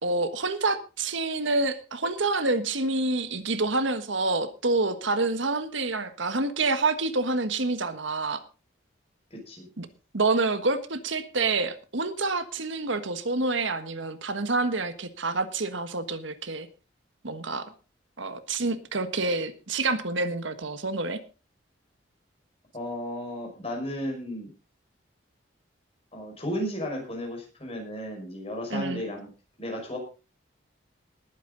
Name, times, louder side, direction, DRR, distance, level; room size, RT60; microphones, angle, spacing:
voice 1, 0.0-8.4 9.8-9.9 10.1-16.7 17.2-17.7 18.2-21.2 28.7-29.0, right 3 dB, 75° right, 10 dB, 1.5 m, -27 dB
voice 2, 9.3-9.7 22.7-24.5 26.1-29.3 29.6-30.0, equal, 30° left, 1 dB, 5.7 m, -34 dB
19.5 x 9.4 x 4.0 m, 0.34 s
head